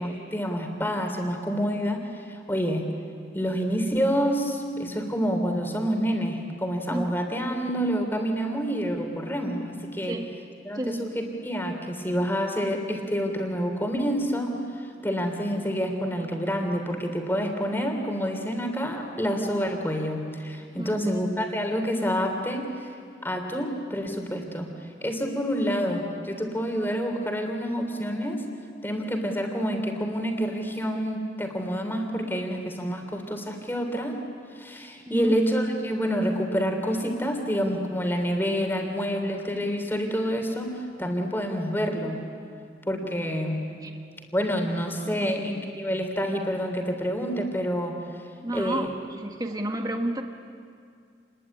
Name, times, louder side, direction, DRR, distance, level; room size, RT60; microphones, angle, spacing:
voice 1, 0.0-2.0 2.3-2.9 3.3-10.1 10.6-14.5 15.0-22.9 23.2-24.7 25.0-28.4 28.8-34.2 34.5-42.2 42.9-43.6 44.3-47.9 48.5-48.9, equal, 10° left, 3 dB, 3.2 m, -28 dB
voice 2, 10.7-11.1 20.7-21.2 35.1-35.4 43.8-43.9 45.2-45.4 48.4-50.2, right 1 dB, 20° right, 3 dB, 1.5 m, -31 dB
28.5 x 21.0 x 10.0 m, 2.3 s
head